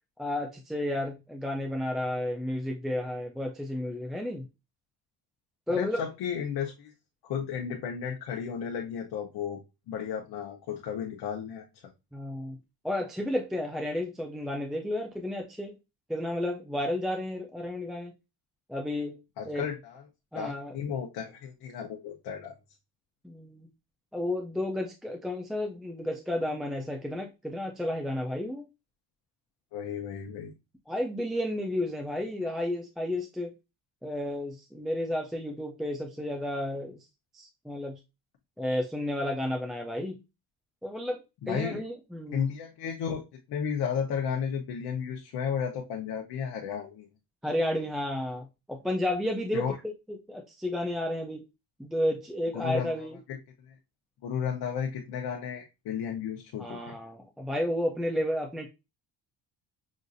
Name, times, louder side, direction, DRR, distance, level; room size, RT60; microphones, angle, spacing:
voice 1, 0.2-4.5 5.7-6.0 12.1-12.6 12.8-15.8 16.1-18.1 18.7-19.2 19.5-19.7 20.3-20.7 23.2-23.7 24.1-28.7 30.9-33.5 34.0-37.1 37.3-38.0 38.6-40.2 40.8-41.2 41.5-42.5 47.4-51.4 51.8-53.2 56.6-58.7, left 1 dB, ahead, 0.3 m, -32 dB
voice 2, 5.7-6.9 7.2-9.6 9.9-11.6 19.4-20.0 20.3-22.5 29.7-30.5 41.4-41.8 42.3-43.2 43.5-47.1 49.5-49.8 52.5-52.9 53.3-53.4 53.6-53.7 54.2-57.0, left 7 dB, 70° left, 0.9 m, -33 dB
6.2 x 2.5 x 2.6 m
cardioid pair, 145°, 40 cm